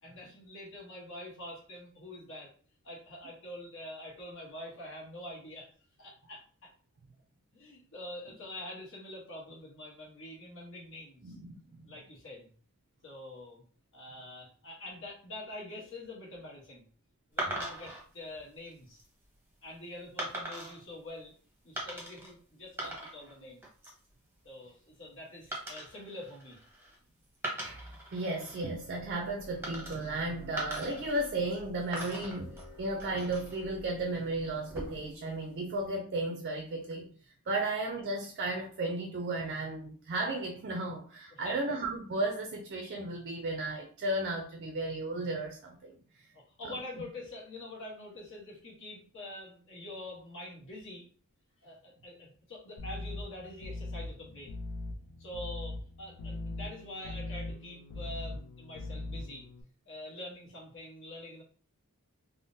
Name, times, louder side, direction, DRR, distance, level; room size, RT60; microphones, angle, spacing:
voice 1, 0.0-2.5 2.8-5.7 6.0-6.7 7.5-11.4 11.8-12.5 13.0-13.6 13.9-16.8 17.3-19.0 19.6-21.4 21.6-23.7 24.4-26.6 41.3-41.6 46.3-51.0 51.6-54.6 55.2-59.4 59.9-61.4, left 1 dB, 55° left, -3 dB, 1.0 m, -45 dB
voice 2, 11.2-11.8 17.5-17.6 22.8-22.9 27.6-37.1 37.5-45.9 46.6-46.7, right 2 dB, 45° right, 2 dB, 0.4 m, -34 dB
sound 1, 17.4-18.0 18.7-19.1 20.2-20.8 21.8-22.3 22.6-23.3 23.6-24.1 25.5-27.0 27.3-28.6 29.6-30.2 30.6-31.6 31.9-33.6 34.6-35.2, right 1 dB, 10° right, 0.8 m, -40 dB
sound 2, 28.6-35.1, left 1 dB, 20° left, 1.3 m, -52 dB
sound 3, 52.8-59.6, left 2 dB, 75° left, 0.4 m, -41 dB
3.5 x 2.0 x 2.6 m, 0.43 s
head